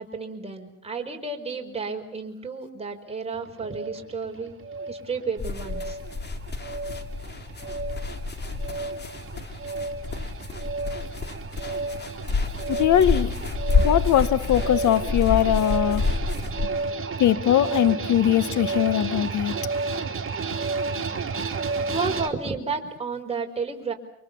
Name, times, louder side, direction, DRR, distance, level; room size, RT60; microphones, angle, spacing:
voice 1, 0.0-4.6 4.9-6.0 21.8-23.9, right 4 dB, 20° right, 2 dB, 5.1 m, -32 dB
sound 1, 3.3-22.3, right 4 dB, 45° right, 3.2 m, -32 dB
sound 2, 5.4-16.7, left 4 dB, 35° left, 2.6 m, -29 dB
voice 2, 12.7-13.4 13.8-16.1 17.2-19.5, left 11 dB, 75° left, 15 dB, 1.3 m, -21 dB
29.5 x 24.5 x 7.0 m, 0.76 s
cardioid pair, 90°, 30 cm